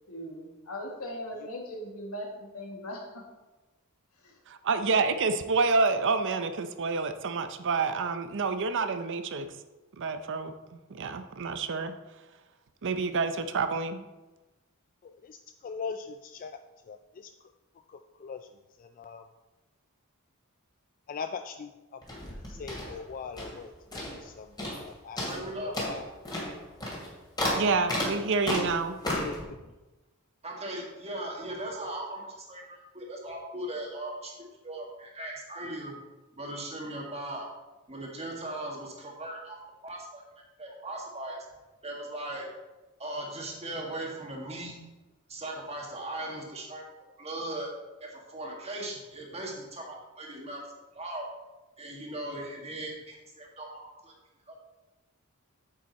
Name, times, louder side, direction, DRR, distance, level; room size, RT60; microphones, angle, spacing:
voice 1, 0.1-3.3 4.2-4.4, equal, 80° left, 0 dB, 1.9 m, -39 dB
voice 2, 4.5-9.5 10.0-11.9 12.8-14.1 27.5-29.0, right 4 dB, 55° right, 9 dB, 0.6 m, -28 dB
voice 3, 15.0-16.6 16.9-17.5 17.9-18.5 18.8-19.3 21.1-22.0 22.5-23.7 24.1-25.2 25.6-26.1 28.5-28.7 29.0-29.6, left 5 dB, 40° left, 8 dB, 0.3 m, -41 dB
sound 1, 22.0-23.6 23.9-24.3 24.6-24.9 25.2-29.4, left 1 dB, 20° left, 2.5 m, -33 dB
voice 4, 25.3-25.8 30.4-34.3 34.6-36.0 36.4-37.5 37.9-40.2 40.6-41.4 41.8-42.5 43.0-44.8 45.3-46.8 47.2-47.7 48.0-50.7 50.9-51.3 51.8-54.1 54.5-54.6, right 1 dB, 30° right, -1 dB, 1.9 m, -38 dB
8.7 x 7.5 x 4.1 m, 1.1 s
head